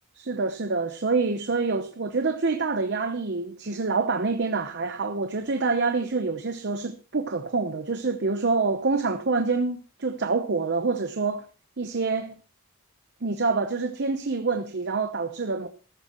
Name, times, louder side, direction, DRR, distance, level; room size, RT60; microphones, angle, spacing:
voice 1, 0.1-11.5 11.8-12.4 13.2-15.7, right 4 dB, 55° right, 0.9 m, -26 dB
14.5 x 13.0 x 3.0 m
head